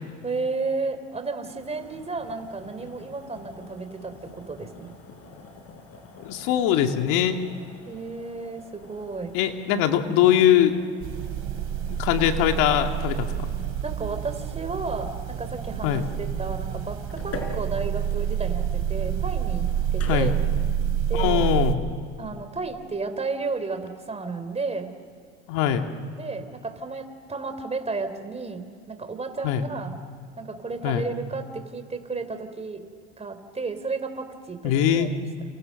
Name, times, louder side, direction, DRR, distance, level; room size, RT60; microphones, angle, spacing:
voice 1, 0.2-4.9 7.9-9.4 13.8-20.5 21.1-21.4 22.2-24.9 26.2-29.9 30.4-32.8 33.2-35.1, right 4 dB, 20° right, 8 dB, 3.4 m, -33 dB
sound 1, 1.4-20.6, left 3 dB, 45° left, 6.0 m, -46 dB
voice 2, 6.2-7.4 9.3-10.7 11.9-13.5 15.8-16.1 20.1-20.4 21.1-21.8 25.5-25.9 29.4-29.6 30.8-31.1 34.6-35.1, left 10 dB, 70° left, 5 dB, 2.4 m, -22 dB
sound 2, 11.0-21.7, right 9 dB, 45° right, 2.7 m, -28 dB
29.5 x 29.0 x 6.6 m, 2.2 s
supercardioid pair, 90°, 33 cm